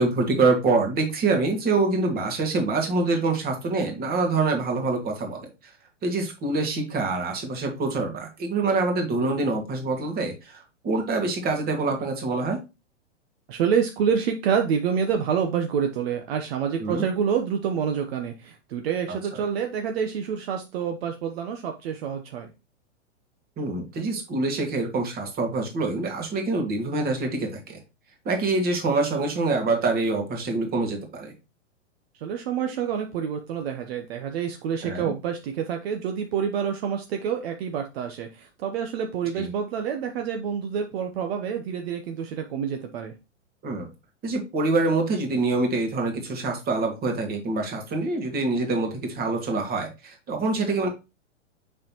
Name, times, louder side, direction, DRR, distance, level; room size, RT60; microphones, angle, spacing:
voice 1, 0.0-5.5 6.0-12.6 16.8-17.0 19.3-19.4 23.6-27.8 28.3-31.3 34.8-35.1 39.4-39.5 43.6-43.9 44.2-50.9, right 3 dB, 25° right, 4 dB, 2.1 m, -25 dB
voice 2, 13.5-22.5 32.2-43.1, right 7 dB, 55° right, 5 dB, 1.0 m, -27 dB
6.4 x 5.7 x 3.0 m, 0.27 s
hypercardioid pair, 115°, 37 cm